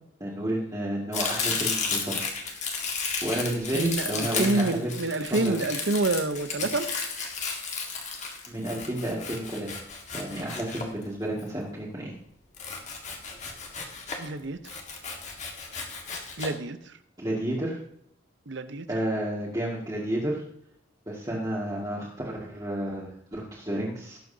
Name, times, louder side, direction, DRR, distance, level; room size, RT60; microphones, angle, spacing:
voice 1, 0.2-2.7 3.2-5.0 5.3-5.5 8.5-9.7 10.1-12.1 17.2-17.8 18.9-20.4 21.1-24.2, right 1 dB, 20° right, -7 dB, 2.0 m, -31 dB
Domestic sounds home sounds, 1.1-11.4 12.5-14.3 14.6-16.5, left 4 dB, 35° left, 1.7 m, -33 dB
voice 2, 3.7-6.9 14.2-14.8 16.4-16.8 18.5-18.9, right 2 dB, 65° right, 11 dB, 0.8 m, -28 dB
18.0 x 7.7 x 2.8 m, 0.69 s
head